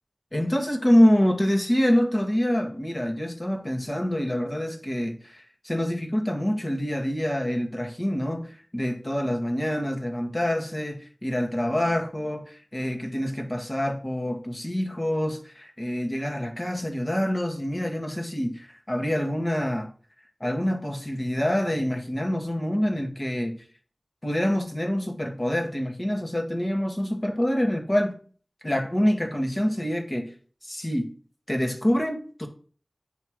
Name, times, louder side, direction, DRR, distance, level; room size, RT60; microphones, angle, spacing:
voice 1, 0.3-19.9 20.4-23.6 24.2-28.2 28.6-30.3 30.6-31.1 31.5-32.5, equal, 35° left, 1.9 m, -26 dB
9.4 x 3.3 x 6.2 m
wide cardioid pair, 45°, 0 cm